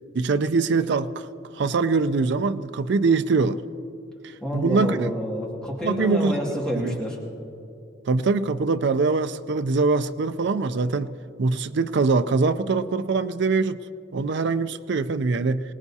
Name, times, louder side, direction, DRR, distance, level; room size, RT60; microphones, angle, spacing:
voice 1, 0.1-1.3 1.5-3.6 4.5-5.1 5.8-6.4 6.7-7.0 8.0-13.8 14.1-15.6, right 4 dB, 65° right, 10 dB, 0.4 m, -23 dB
voice 2, 4.4-7.2, equal, 5° left, -4 dB, 2.2 m, -28 dB
25.0 x 18.5 x 2.8 m, 2.6 s
head